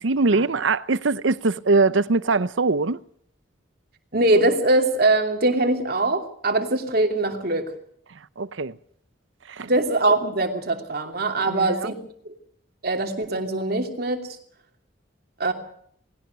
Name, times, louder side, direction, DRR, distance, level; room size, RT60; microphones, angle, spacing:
voice 1, 0.0-3.0 8.1-8.8 9.5-9.7 11.5-11.9, right 3 dB, 75° right, 0.8 m, -22 dB
voice 2, 4.1-7.7 9.6-11.9 12.8-14.3 15.4-15.5, right 2 dB, 50° right, 2.9 m, -22 dB
20.0 x 17.0 x 8.0 m
head